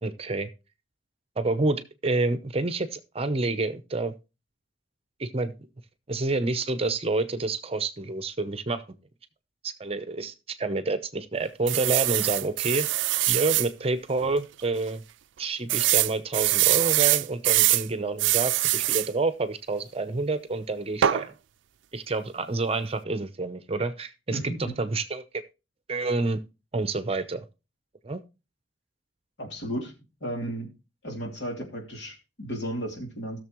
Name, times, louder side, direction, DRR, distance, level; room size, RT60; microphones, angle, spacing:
voice 1, 0.0-0.5 1.4-4.1 5.2-5.5 6.1-9.0 9.6-12.9 13.3-15.0 15.4-21.3 21.9-25.2 25.9-26.4 26.7-27.4 28.0-28.2, right 3 dB, 30° right, 12 dB, 0.7 m, -28 dB
sound 1, 11.7-13.7 14.2-14.3 14.6-14.7 15.7-17.9 18.2-19.1 21.0-21.3, right 15 dB, 85° right, 0.4 m, -23 dB
voice 2, 24.3-24.7 29.4-29.9 30.2-30.7 31.0-33.4, right 1 dB, 65° left, 2 dB, 2.9 m, -34 dB
16.0 x 6.8 x 3.0 m, 0.29 s
head